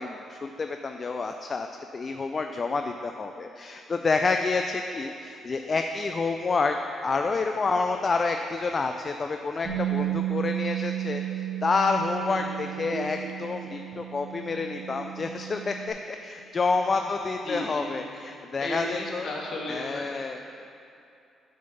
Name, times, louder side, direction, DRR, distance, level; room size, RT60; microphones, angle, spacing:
voice 1, 0.0-1.7 1.9-6.8 7.0-19.3 19.7-20.4, left 4 dB, 35° left, 5 dB, 0.4 m, -28 dB
Bass guitar, 9.6-15.9, right 13 dB, 65° right, 1.8 m, -33 dB
sound 1, 10.7-16.4 16.8-16.9, right 3 dB, 90° right, 0.6 m, -47 dB
voice 2, 12.3-12.7 16.8-16.9 17.4-18.1 18.6-20.1, left 1 dB, 55° left, -3 dB, 1.7 m, -35 dB
6.6 x 5.2 x 6.8 m, 2.6 s
cardioid pair, 90°, 0 cm